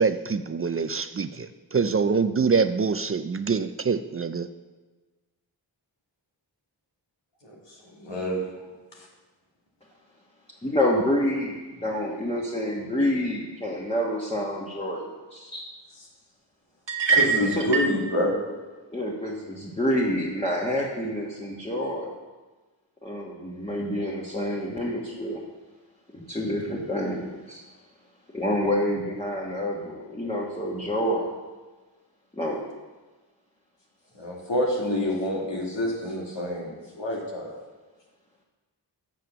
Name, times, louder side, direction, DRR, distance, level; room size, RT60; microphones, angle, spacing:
voice 1, 0.0-4.5, right 5 dB, 35° right, 11 dB, 0.4 m, -25 dB
voice 2, 7.4-8.5 15.5-15.7 16.0-16.1 17.1-18.3 34.2-37.6, left 1 dB, 90° left, -2 dB, 2.2 m, -28 dB
voice 3, 10.6-15.5 17.6-17.7 18.9-22.2 23.0-25.4 26.1-27.6 28.3-31.3 32.3-32.6, left 1 dB, 15° left, -3 dB, 1.2 m, -28 dB
sound 1, 16.9-18.0, right 5 dB, 80° right, 1.1 m, -23 dB
7.6 x 6.9 x 6.7 m, 1.3 s
wide cardioid pair, 85°, 42 cm